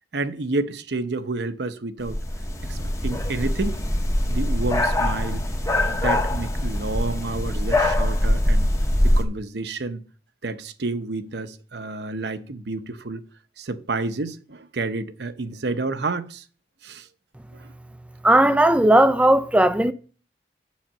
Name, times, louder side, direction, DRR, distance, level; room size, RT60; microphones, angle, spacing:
voice 1, 0.1-2.2 2.6-3.8 4.3-5.4 5.9-8.7 9.0-10.0 10.4-13.2 13.6-16.4 16.8-17.1 17.6-17.7, right 3 dB, 65° right, 0.8 m, -30 dB
sound 1, 2.0-9.2, left 1 dB, 15° left, 0.9 m, -23 dB
voice 2, 18.2-19.9, right 1 dB, 5° right, 0.4 m, -16 dB
7.3 x 6.4 x 7.4 m
head